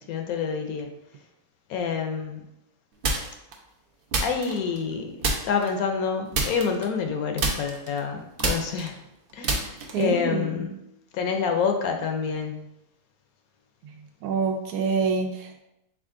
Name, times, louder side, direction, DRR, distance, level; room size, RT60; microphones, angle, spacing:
voice 1, 0.1-0.9 1.7-2.4 4.2-5.2 5.4-9.0 9.3-10.7 11.1-12.6, left 6 dB, 70° left, 4 dB, 1.0 m, -27 dB
sound 1, 3.0-3.5 4.1-4.9 5.2-5.7 6.3-7.1 7.4-10.2, right 3 dB, 60° right, 0.6 m, -28 dB
voice 2, 9.9-10.7 14.2-15.6, right 5 dB, 80° right, 4 dB, 1.1 m, -26 dB
5.0 x 2.4 x 3.6 m, 0.86 s
omnidirectional pair, 1.6 m